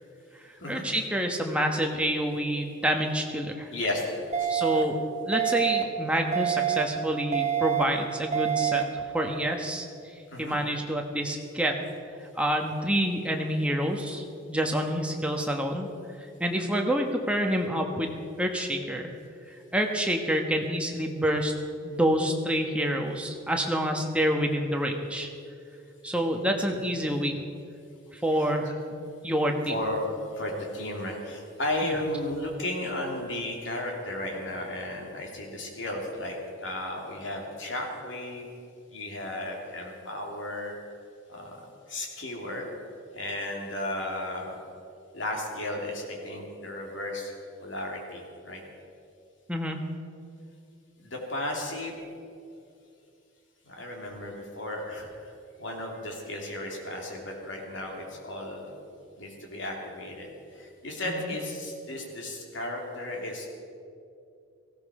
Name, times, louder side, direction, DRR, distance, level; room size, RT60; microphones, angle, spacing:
voice 1, 0.7-3.7 4.5-5.0 5.3-9.9 10.4-11.8 12.4-15.9 16.4-18.1 18.4-19.1 19.7-21.5 21.8-25.3 26.0-27.4 28.1-29.7 31.8-32.0 49.5-49.8 61.1-61.3, equal, 5° right, 2 dB, 1.2 m, -27 dB
voice 2, 3.7-4.9 10.3-10.6 26.7-27.0 28.2-28.5 29.6-30.1 30.3-38.5 38.9-40.7 41.3-42.7 43.1-44.5 45.1-47.3 47.6-48.6 51.0-52.0 53.6-55.3 55.6-58.7 59.2-63.5, left 1 dB, 65° left, 0 dB, 2.9 m, -34 dB
sound 1, 4.3-4.8 5.3-5.8 6.3-6.8 7.3-7.8 8.3-8.8, right 11 dB, 35° right, 0.9 m, -26 dB
18.0 x 15.5 x 4.9 m, 2.6 s
head